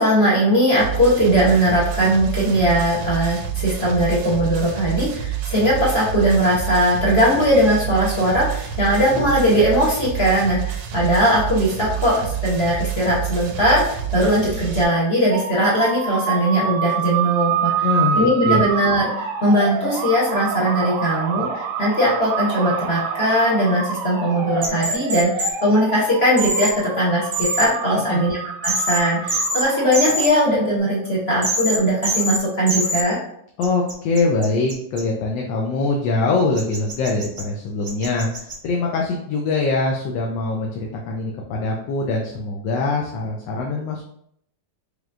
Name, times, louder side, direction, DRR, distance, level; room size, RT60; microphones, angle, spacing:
voice 1, 0.0-13.8 14.1-17.9 18.2-33.2, equal, 45° left, -6 dB, 0.9 m, -19 dB
sound 1, 0.8-14.8, right 10 dB, 70° right, 1.0 m, -28 dB
sound 2, 15.3-30.8, right 7 dB, 85° right, 1.3 m, -27 dB
voice 2, 17.8-18.6 27.9-28.2 33.6-40.8 41.1-44.0, left 3 dB, 80° left, -1 dB, 1.3 m, -23 dB
sound 3, 24.6-25.5 26.4-26.7 27.3-27.7 28.6-29.0 29.3-29.6 29.9-30.3 31.4-31.8 32.0-32.4 32.7-33.0 33.6-35.0 36.6-37.4 37.8-38.5, right 1 dB, 45° right, 0.5 m, -23 dB
5.0 x 3.0 x 2.4 m, 0.70 s
omnidirectional pair, 2.0 m